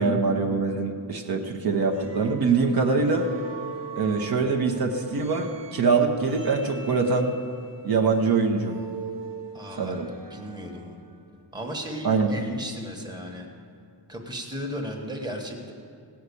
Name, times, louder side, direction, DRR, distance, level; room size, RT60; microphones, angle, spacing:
voice 1, 0.0-3.3 4.0-7.3 7.8-8.7 9.8-10.1 12.0-12.3, right 4 dB, 55° right, 3 dB, 1.0 m, -23 dB
sound 1, 1.7-11.0, right 5 dB, 75° right, 1.2 m, -42 dB
voice 2, 9.5-11.0 11.5-13.5 14.1-15.7, equal, 10° right, 1 dB, 1.2 m, -35 dB
16.5 x 5.8 x 8.3 m, 2.3 s
wide cardioid pair, 165°, 43 cm